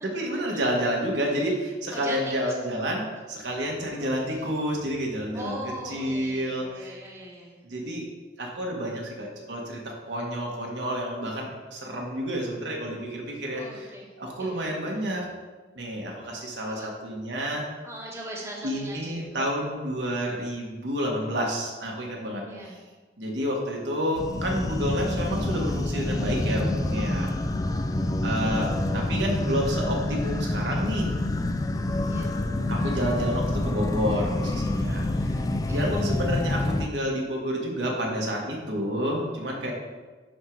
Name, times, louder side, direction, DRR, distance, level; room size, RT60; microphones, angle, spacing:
voice 1, 0.0-7.0 7.6-8.1 8.4-15.3 15.7-17.6 18.6-22.4 23.2-27.3 28.2-31.1 32.7-35.3 35.7-39.7, equal, 75° right, -2 dB, 1.7 m, -29 dB
voice 2, 1.9-2.5 3.9-4.1 5.3-7.6 13.5-14.1 14.4-14.7 16.7-16.9 17.8-19.4 22.4-22.8 32.1-32.3 35.7-36.0, right 1 dB, 15° right, -3 dB, 1.2 m, -40 dB
sound 1, 24.2-36.9, left 1 dB, 20° left, 0.3 m, -27 dB
11.0 x 3.8 x 4.7 m, 1.3 s
head